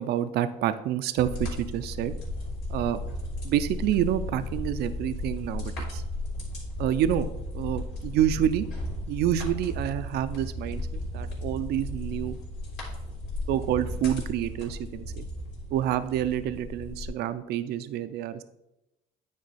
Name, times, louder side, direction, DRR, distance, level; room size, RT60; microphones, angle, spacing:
voice 1, 0.0-2.1 2.7-3.0 3.4-6.0 6.8-8.7 9.1-12.4 13.5-15.3 15.7-18.4, right 11 dB, 75° right, 12 dB, 0.5 m, -28 dB
sound 1, 1.2-17.1, left 1 dB, 85° left, 2.9 m, -35 dB
9.5 x 4.5 x 4.1 m, 0.91 s
cardioid pair, 110°, 17 cm